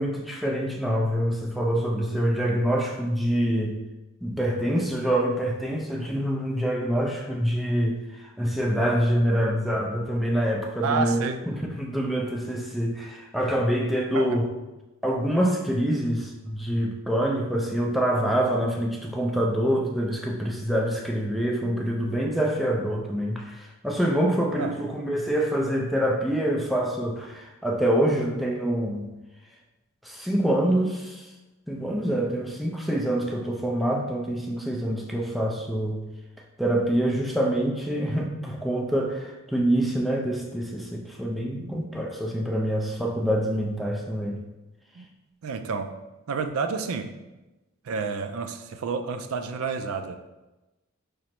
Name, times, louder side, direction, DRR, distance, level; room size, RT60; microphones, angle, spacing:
voice 1, 0.0-3.8 4.2-14.5 15.0-29.1 30.0-31.3 31.7-36.0 36.6-44.4, right 1 dB, ahead, -1 dB, 0.4 m, -26 dB
voice 2, 10.8-11.4 14.1-14.4 24.6-24.7 41.5-41.9 45.0-45.1 45.4-45.9 46.3-47.1 47.8-50.2, right 5 dB, 70° right, 7 dB, 0.4 m, -30 dB
5.0 x 2.0 x 4.3 m, 1.1 s
head